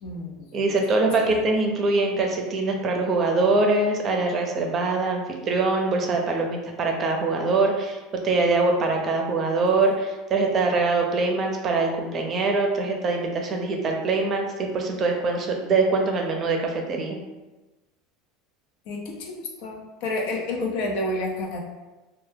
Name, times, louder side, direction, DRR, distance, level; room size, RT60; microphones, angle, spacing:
voice 1, 0.0-0.5 18.9-21.6, left 2 dB, 70° left, 0 dB, 0.5 m, -30 dB
voice 2, 0.5-8.0 8.2-17.2, right 3 dB, 40° right, 2 dB, 0.5 m, -23 dB
2.1 x 2.1 x 3.2 m, 1.1 s
supercardioid pair, 95°, 0 cm